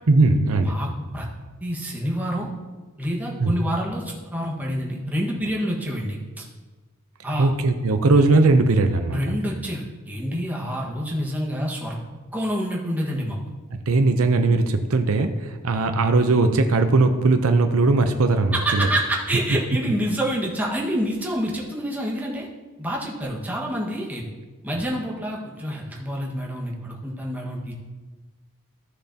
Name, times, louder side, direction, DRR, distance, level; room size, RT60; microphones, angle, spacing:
voice 1, 0.1-0.8 3.4-3.5 7.4-9.2 13.9-18.9, right 3 dB, 70° right, 7 dB, 0.6 m, -19 dB
voice 2, 1.6-2.5 3.0-6.4 7.2-7.5 9.1-12.0 12.3-13.4 18.5-22.5 22.8-24.2 24.6-27.7, equal, 10° right, -3 dB, 1.5 m, -27 dB
14.5 x 6.7 x 2.8 m, 1.3 s
head